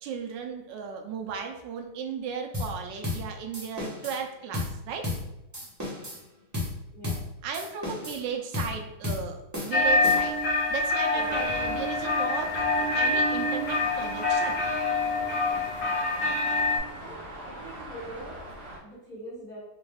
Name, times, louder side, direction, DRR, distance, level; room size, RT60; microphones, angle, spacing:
voice 1, 0.0-5.1 7.4-10.3 10.7-14.6, right 6 dB, 75° right, 3 dB, 1.1 m, -35 dB
sound 1, 2.5-2.8 3.0-3.3 3.5-4.2 4.5-4.8 5.0-5.3 5.5-6.2 6.5-6.8 7.0-7.3 7.5-8.2 8.5-8.8 9.0-9.3 9.5-10.4, left 2 dB, 30° right, 0.3 m, -33 dB
sound 2, 9.7-16.8, left 2 dB, 55° left, 0.9 m, -26 dB
Traffic noise roadway noise, 11.1-18.8, right 1 dB, 45° right, 1.1 m, -41 dB
voice 2, 17.0-18.4 18.8-19.6, right 1 dB, 25° left, -9 dB, 1.1 m, -43 dB
4.2 x 2.3 x 3.2 m, 0.91 s
omnidirectional pair, 2.2 m